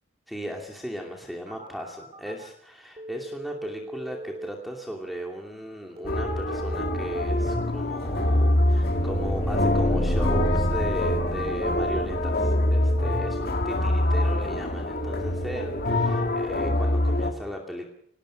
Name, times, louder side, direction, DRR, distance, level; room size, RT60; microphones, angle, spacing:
voice 1, 0.3-17.9, equal, ahead, 0 dB, 2.6 m, -37 dB
Telephone, 1.5-2.5 3.0-4.5 6.0-7.5 9.0-10.5 12.0-13.5 15.0-16.5, right 1 dB, 30° right, 4.6 m, -39 dB
sound 1, 6.0-17.3, left 1 dB, 50° left, 2.6 m, -25 dB
sound 2, 8.5-13.5, equal, 25° left, 2.8 m, -30 dB
25.5 x 19.5 x 6.4 m, 0.67 s
head